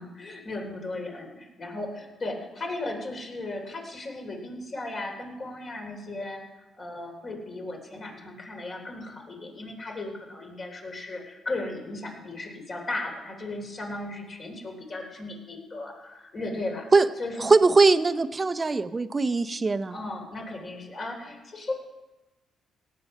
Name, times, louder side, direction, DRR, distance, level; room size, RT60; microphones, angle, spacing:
voice 1, 0.0-16.9 17.2-17.5 19.9-21.7, left 2 dB, 45° left, 1 dB, 3.4 m, -36 dB
voice 2, 17.4-19.9, right 3 dB, 25° right, 13 dB, 0.6 m, -21 dB
17.5 x 7.7 x 5.4 m, 1.1 s
cardioid pair, 90°, 0 cm